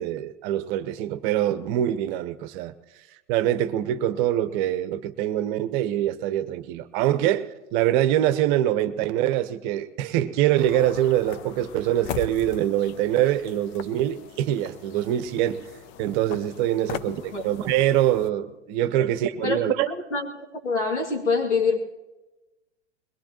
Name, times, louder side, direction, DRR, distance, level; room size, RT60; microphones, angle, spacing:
voice 1, 0.0-2.7 3.3-15.6 16.0-19.9, right 12 dB, 45° right, 0.9 m, -24 dB
sound 1, 10.6-18.3, left 10 dB, 35° left, 0.6 m, -40 dB
voice 2, 19.9-20.3 20.6-21.8, left 4 dB, 85° left, 2.6 m, -25 dB
22.0 x 19.5 x 3.0 m
hypercardioid pair, 105°, 34 cm